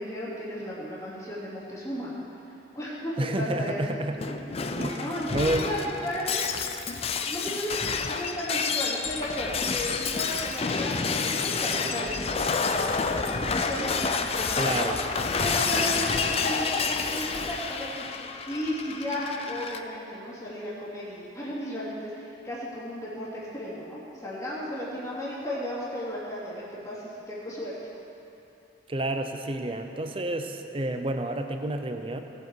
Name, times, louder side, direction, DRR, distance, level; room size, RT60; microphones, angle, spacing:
voice 1, 0.0-2.1 2.7-3.8 4.9-6.6 6.9-7.8 8.1-13.9 14.3-15.0 15.4-18.1 18.5-23.3 23.5-27.8, equal, 20° left, -8 dB, 2.5 m, -34 dB
voice 2, 3.2-4.2 4.8-5.7 14.6-15.0 28.9-32.2, right 1 dB, 30° right, 6 dB, 0.7 m, -30 dB
Shatter, 4.2-19.8, left 5 dB, 35° left, 0.5 m, -29 dB
17.5 x 7.7 x 4.7 m, 2.8 s
head